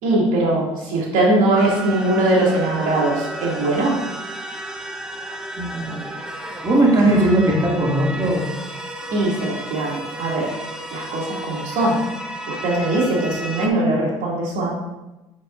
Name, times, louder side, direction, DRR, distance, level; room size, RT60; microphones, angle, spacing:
voice 1, 0.0-4.0 9.1-10.6 10.9-12.0 12.5-14.7, right 2 dB, 70° right, -4 dB, 2.3 m, -21 dB
sound 1, 1.6-13.7, right 1 dB, 5° right, 0.8 m, -33 dB
voice 2, 5.6-6.1 6.6-8.4, right 1 dB, 30° right, -3 dB, 2.2 m, -18 dB
8.4 x 6.8 x 2.5 m, 1.0 s
supercardioid pair, 90°, 13 cm